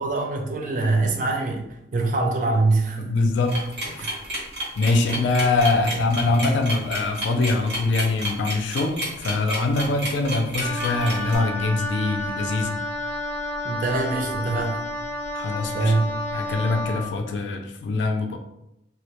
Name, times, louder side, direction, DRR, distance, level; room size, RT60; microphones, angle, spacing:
voice 1, 0.0-3.4 4.0-4.1 13.6-14.8 15.7-16.1, right 3 dB, 45° right, 3 dB, 0.4 m, -24 dB
voice 2, 3.0-4.0 4.8-12.8 15.3-15.9 16.3-18.4, left 3 dB, 80° left, 4 dB, 0.3 m, -23 dB
sound 1, 3.5-11.4, equal, 65° right, 0.9 m, -30 dB
Wind instrument woodwind instrument, 10.6-17.0, left 1 dB, 40° left, 0.6 m, -30 dB
2.2 x 2.1 x 2.8 m, 0.85 s
head